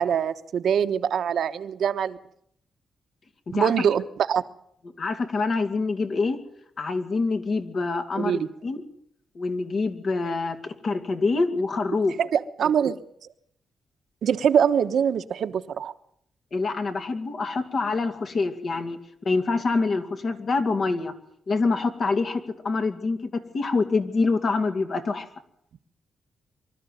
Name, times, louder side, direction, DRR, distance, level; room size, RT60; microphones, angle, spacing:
voice 1, 0.0-2.2 3.5-4.0 4.3-4.4 8.2-8.5 12.2-13.0 14.2-15.9, right 8 dB, 75° right, 9 dB, 1.2 m, -23 dB
voice 2, 5.0-6.4 6.8-8.8 9.3-12.2 16.5-19.0 19.2-21.1 21.5-25.3, left 3 dB, 55° left, 6 dB, 2.4 m, -26 dB
24.5 x 13.0 x 9.3 m, 0.71 s
cardioid pair, 100°, 0 cm